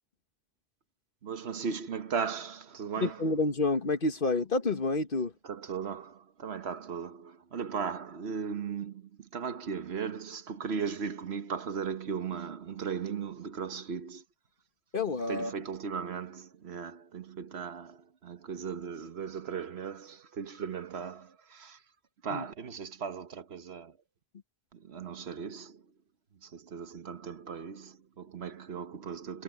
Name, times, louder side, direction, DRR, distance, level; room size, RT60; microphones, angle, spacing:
voice 1, 1.2-3.3 5.4-14.2 15.3-21.8 22.2-24.0 24.7-25.9 26.4-29.4, right 6 dB, 85° right, 1.4 m, -37 dB
voice 2, 3.0-5.3 14.9-15.5 22.3-22.4, left 3 dB, 60° left, 1.6 m, -29 dB
omnidirectional pair, 1.0 m